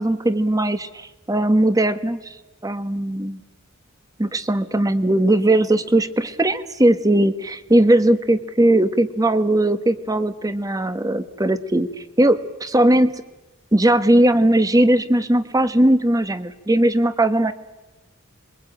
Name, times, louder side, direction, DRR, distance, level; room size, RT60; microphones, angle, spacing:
voice 1, 0.0-2.2 2.6-3.4 4.2-11.9 12.2-13.1 13.7-17.5, right 1 dB, 15° right, 11 dB, 1.2 m, -18 dB
26.5 x 23.0 x 8.9 m, 1.1 s
head